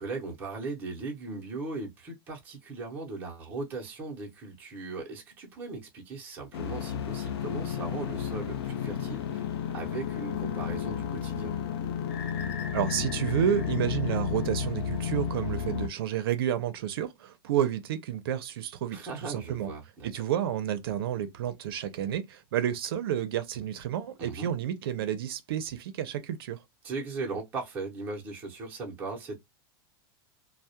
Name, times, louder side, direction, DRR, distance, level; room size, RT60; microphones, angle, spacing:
voice 1, 0.0-11.6 18.9-20.1 24.2-24.5 26.8-29.4, right 3 dB, 15° right, 0.6 m, -38 dB
sound 1, 6.5-15.9, left 7 dB, 85° left, 0.5 m, -32 dB
sound 2, 12.1-14.9, left 6 dB, 40° left, 0.7 m, -44 dB
voice 2, 12.7-19.7 20.0-26.6, right 10 dB, 70° right, 0.5 m, -30 dB
2.2 x 2.0 x 2.7 m
supercardioid pair, 180°, 13 cm